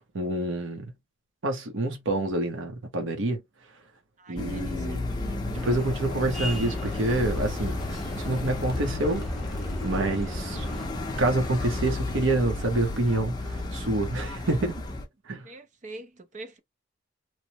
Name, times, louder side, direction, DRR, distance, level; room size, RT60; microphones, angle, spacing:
voice 1, 0.1-0.9 1.4-3.4 4.3-5.1 5.6-9.3 9.8-10.7 11.2-14.8 15.3-15.5, right 2 dB, 80° right, 0.8 m, -27 dB
voice 2, 4.2-5.7 15.4-16.6, right 2 dB, 40° right, 0.5 m, -43 dB
sound 1, 4.4-15.1, left 2 dB, 20° left, 0.5 m, -32 dB
sound 2, 5.5-10.9, left 1 dB, ahead, 1.0 m, -39 dB
3.0 x 2.0 x 2.8 m
head